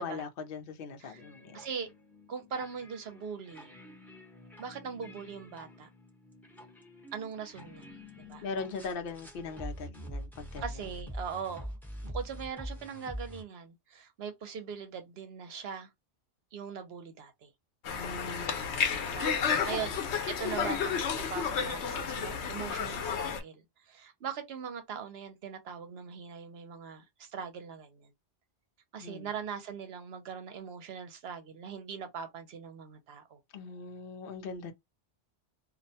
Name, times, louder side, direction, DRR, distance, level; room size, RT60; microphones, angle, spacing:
voice 1, 0.0-1.6 8.4-10.9 17.9-19.3 19.5-19.9 29.0-29.3 33.5-34.7, left 4 dB, 60° left, 0.8 m, -40 dB
sound 1, 1.2-13.4, equal, ahead, 0.9 m, -45 dB
voice 2, 1.5-1.9 2.3-3.7 4.6-5.9 7.1-8.5 10.6-15.9 16.5-17.5 19.0-19.9 20.3-28.1 28.9-33.4, right 6 dB, 70° right, 0.9 m, -41 dB
Conversation, 17.9-23.4, left 6 dB, 90° left, 0.9 m, -31 dB
2.5 x 2.1 x 2.7 m
omnidirectional pair, 1.1 m